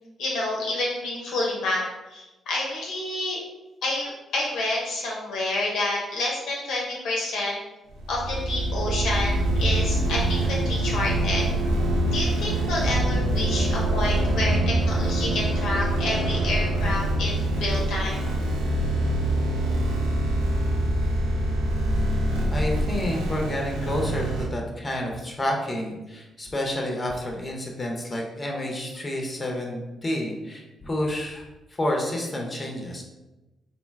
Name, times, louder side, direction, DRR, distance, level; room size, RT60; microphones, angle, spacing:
voice 1, 0.2-1.8 2.1-3.4 3.8-7.6 8.1-11.5 12.1-18.3, left 2 dB, 70° left, -3 dB, 0.6 m, -29 dB
sound 1, 7.9-24.5, right 1 dB, 90° right, 0.4 m, -24 dB
voice 2, 22.5-31.5 31.7-33.0, left 1 dB, 30° left, 0 dB, 0.6 m, -29 dB
2.5 x 2.2 x 3.3 m, 1.0 s
hypercardioid pair, 45°, 0 cm